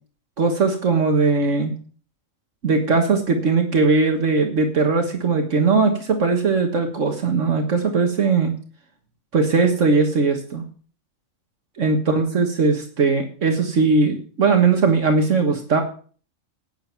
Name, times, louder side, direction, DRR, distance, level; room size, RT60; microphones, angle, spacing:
voice 1, 0.4-1.7 2.6-8.5 9.3-10.6 11.8-15.8, right 4 dB, 65° right, 4 dB, 1.8 m, -19 dB
11.5 x 9.3 x 5.9 m, 0.42 s
omnidirectional pair, 1.4 m